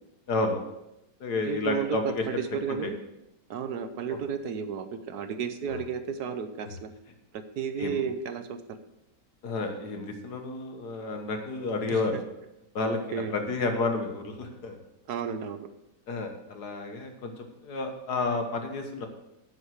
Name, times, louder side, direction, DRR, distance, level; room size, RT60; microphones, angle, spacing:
voice 1, 0.3-0.6 1.2-2.2 2.7-2.9 4.1-4.2 5.7-5.8 6.6-6.7 7.8-8.0 9.4-12.2 12.8-14.8 16.1-19.1, left 3 dB, 65° left, 5 dB, 1.9 m, -31 dB
voice 2, 1.4-3.0 3.5-6.9 7.3-8.8 11.9-12.0 13.1-13.3 15.1-15.7, right 6 dB, 70° right, 9 dB, 1.3 m, -33 dB
10.5 x 6.5 x 6.4 m, 0.89 s
omnidirectional pair, 1.8 m